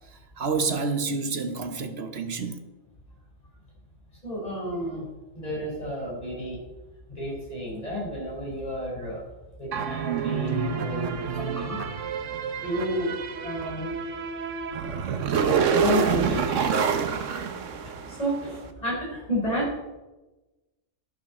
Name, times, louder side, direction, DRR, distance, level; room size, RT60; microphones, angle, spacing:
voice 1, 0.4-2.6, right 4 dB, 55° right, 1.3 m, -28 dB
voice 2, 4.2-5.1 5.3-6.6 7.1-9.2 9.6-11.9 12.6-13.1 13.4-14.0 15.5-16.8 17.5-19.8, equal, 30° left, 4.9 m, -31 dB
sound 1, 9.7-18.4, right 6 dB, 80° right, 1.3 m, -27 dB
11.5 x 11.0 x 4.3 m
omnidirectional pair, 1.3 m